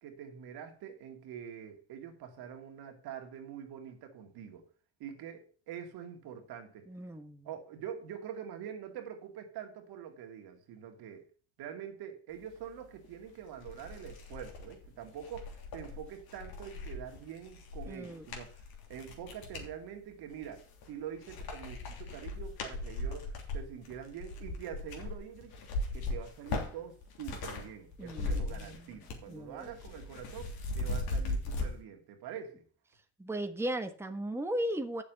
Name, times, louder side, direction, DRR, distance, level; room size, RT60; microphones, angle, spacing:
voice 1, 0.0-4.7 5.0-6.9 7.4-11.3 11.6-18.6 18.9-25.5 25.9-32.6, right 8 dB, 75° right, 2.4 m, -45 dB
voice 2, 6.9-7.5 17.9-18.2 28.0-28.8 29.3-29.7 33.2-35.0, right 1 dB, 5° right, 1.3 m, -36 dB
sound 1, 13.0-13.1 13.6-19.7 20.3-20.9 21.2-27.7 27.9-29.3 29.6-31.7, left 2 dB, 75° left, 3.2 m, -38 dB
8.5 x 7.0 x 6.7 m
supercardioid pair, 85°, 38 cm